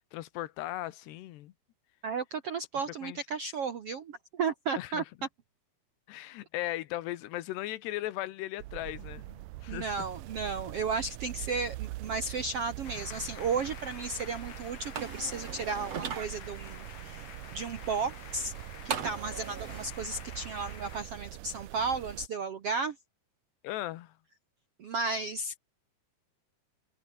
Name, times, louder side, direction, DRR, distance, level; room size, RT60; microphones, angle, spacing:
voice 1, 0.0-1.5 3.0-3.2 4.8-5.0 6.1-10.1 23.6-24.1, left 15 dB, 90° left, 3.3 m, -37 dB
voice 2, 2.0-5.0 9.7-18.5 18.8-22.9 24.8-25.6, right 4 dB, 70° right, 1.4 m, -34 dB
sound 1, 8.6-22.3, right 18 dB, 85° right, 1.9 m, -43 dB
sound 2, 12.8-21.0, left 10 dB, 55° left, 2.5 m, -49 dB
sound 3, 15.0-16.3 18.9-19.9, right 7 dB, 45° right, 3.0 m, -37 dB
omnidirectional pair, 4.7 m